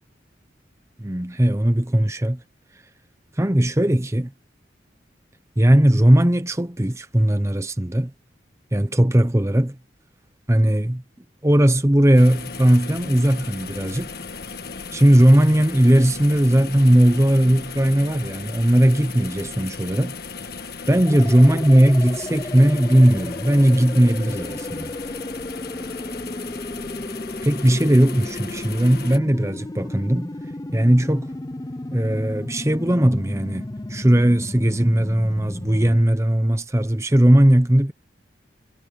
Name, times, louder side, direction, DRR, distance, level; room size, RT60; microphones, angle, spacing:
voice 1, 1.0-2.4 3.4-4.3 5.6-8.1 8.7-9.8 10.5-11.0 11.4-14.2 14.9-20.1 20.9-24.9 27.4-30.3 30.7-31.3 31.9-37.9, right 1 dB, 15° right, 0.9 m, -18 dB
sound 1, 12.1-29.2, left 4 dB, 55° left, 1.5 m, -36 dB
sound 2, 21.1-36.0, left 1 dB, 20° left, 0.5 m, -34 dB
head